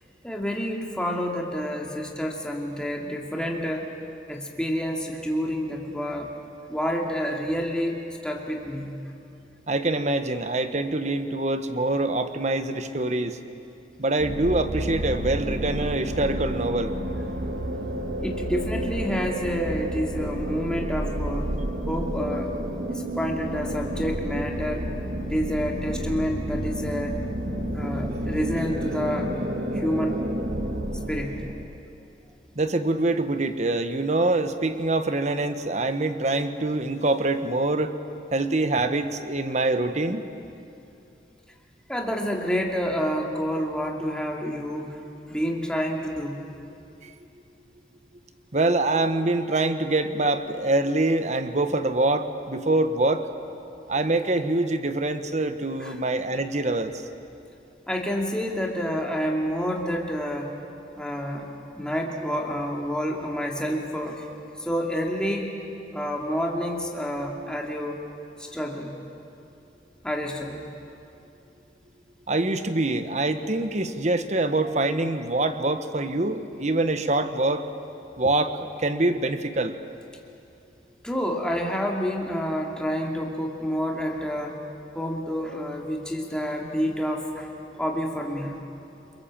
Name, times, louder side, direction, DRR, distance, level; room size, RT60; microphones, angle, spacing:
voice 1, 0.2-3.9 4.3-6.3 6.7-9.0 18.2-21.5 21.9-22.5 22.9-24.9 25.2-27.2 27.7-29.3 29.7-30.3 31.1-31.4 41.9-45.0 45.3-46.4 55.8-56.0 57.9-60.5 61.0-64.3 64.6-65.5 65.9-68.0 68.4-68.9 70.0-70.6 81.0-84.6 84.9-87.5 87.8-88.6, equal, 5° left, 0 dB, 2.4 m, -28 dB
voice 2, 9.7-13.4 14.0-16.9 32.6-37.9 38.3-40.2 47.0-47.1 48.5-53.3 53.9-57.0 72.3-77.7 78.2-79.8, right 2 dB, 40° right, 9 dB, 1.2 m, -25 dB
sound 1, 14.2-31.6, right 1 dB, 60° right, 1.8 m, -30 dB
29.0 x 23.0 x 7.5 m, 2.7 s
head